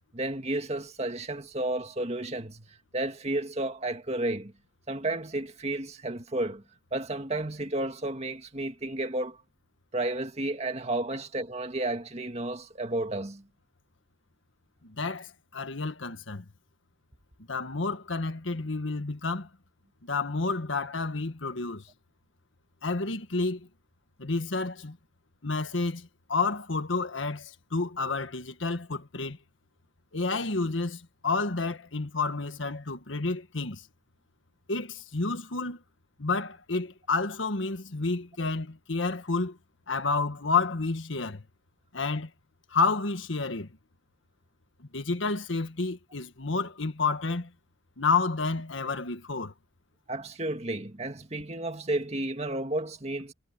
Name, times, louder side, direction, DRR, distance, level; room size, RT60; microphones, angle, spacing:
voice 1, 0.1-2.7 2.9-4.5 4.9-6.6 6.9-9.4 9.9-13.4 50.1-53.3, right 2 dB, 35° right, 2.0 m, -32 dB
voice 2, 14.8-16.4 17.5-19.5 20.0-21.9 22.8-23.7 24.2-25.0 25.4-29.4 30.1-33.8 34.7-35.8 36.2-39.6 39.9-41.4 41.9-42.3 42.7-43.7 44.8-47.5 48.0-49.5, left 3 dB, 85° left, 1.5 m, -30 dB
head